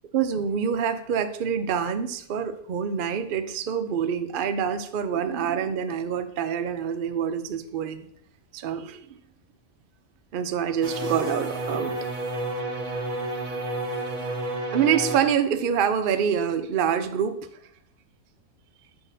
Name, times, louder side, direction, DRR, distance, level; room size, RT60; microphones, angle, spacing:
voice 1, 0.1-8.1 8.5-9.2 10.3-11.9 14.7-17.4, right 8 dB, 80° right, 8 dB, 0.4 m, -26 dB
sound 1, 10.8-15.4, right 1 dB, 45° right, 0.7 m, -30 dB
6.7 x 5.8 x 2.7 m, 0.68 s
omnidirectional pair, 1.6 m